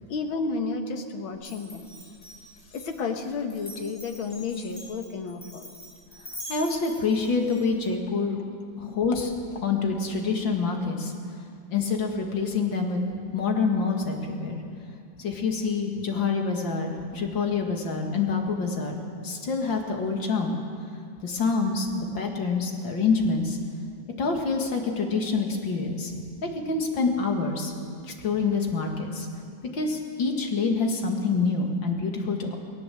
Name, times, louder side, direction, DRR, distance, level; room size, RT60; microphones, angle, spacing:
voice 1, 0.1-1.9 2.7-5.6, left 4 dB, 90° left, 5 dB, 2.2 m, -31 dB
Glass, 1.4-7.9, left 1 dB, 45° left, 7.6 m, -44 dB
voice 2, 6.5-8.4 8.8-9.3 9.6-11.1 11.7-13.0 13.3-14.6 15.2-20.5 21.2-23.6 24.2-26.1 26.4-27.7 28.1-29.3 29.7-32.6, left 4 dB, 65° left, 2 dB, 2.8 m, -26 dB
19.0 x 17.5 x 7.7 m, 2.3 s
omnidirectional pair, 2.2 m